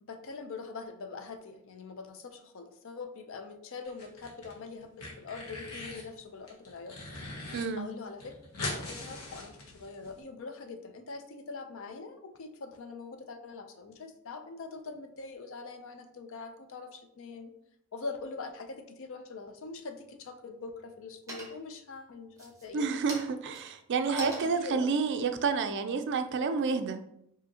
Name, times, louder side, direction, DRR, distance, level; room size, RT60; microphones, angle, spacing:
voice 1, 0.0-8.3 8.7-17.5 17.9-23.0 24.1-24.9, left 4 dB, 60° left, 7 dB, 0.5 m, -43 dB
sound 1, 3.9-4.5 4.8-6.1 6.5-7.6 7.9-8.0 8.2-10.1, left 2 dB, 85° left, 1.1 m, -40 dB
voice 2, 7.5-7.9 22.7-27.0, right 5 dB, 55° right, 8 dB, 0.4 m, -29 dB
sound 2, 19.6-20.2 20.6-21.0 21.3-21.8 22.3-26.7, right 1 dB, 15° right, 0.9 m, -45 dB
5.0 x 2.7 x 2.7 m, 0.76 s
head